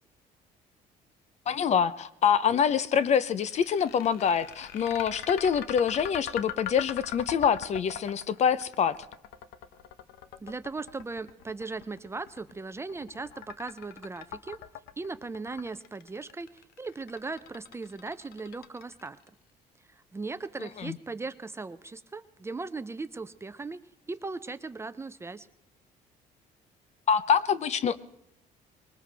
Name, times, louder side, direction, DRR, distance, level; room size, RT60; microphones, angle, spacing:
voice 1, 1.5-8.9 20.6-21.0 27.1-28.0, left 7 dB, 45° left, 17 dB, 0.7 m, -25 dB
sound 1, 3.1-19.3, left 10 dB, 80° left, 0.9 m, -41 dB
voice 2, 10.4-14.6 15.0-19.2 19.9-23.8 24.1-25.5, right 3 dB, 15° right, 13 dB, 0.5 m, -38 dB
21.5 x 19.0 x 3.4 m, 0.83 s
cardioid pair, 120°, 16 cm